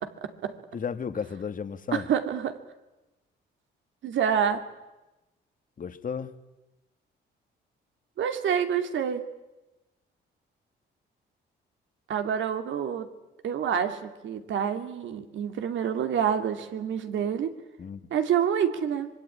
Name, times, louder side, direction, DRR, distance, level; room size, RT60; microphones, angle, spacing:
voice 1, 0.0-0.5 1.9-2.6 4.0-4.6 8.2-9.2 12.1-13.1 13.4-17.5 18.1-19.1, right 8 dB, 75° right, 2.6 m, -27 dB
voice 2, 0.7-2.1 5.8-6.3 17.8-18.0, left 6 dB, 45° left, 1.7 m, -33 dB
25.5 x 22.0 x 9.8 m
cardioid pair, 90°, 20 cm